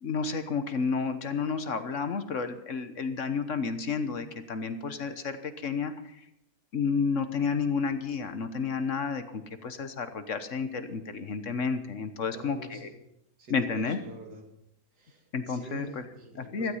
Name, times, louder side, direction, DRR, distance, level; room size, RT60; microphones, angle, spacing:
voice 1, 0.0-5.9 6.7-9.2 9.6-12.9 13.5-14.0 15.3-16.0 16.3-16.7, left 5 dB, 55° left, 10 dB, 1.3 m, -31 dB
voice 2, 12.2-12.9 13.4-14.5 15.0-16.7, right 2 dB, 80° right, 3 dB, 2.9 m, -46 dB
15.5 x 13.0 x 5.6 m, 0.79 s
omnidirectional pair, 1.7 m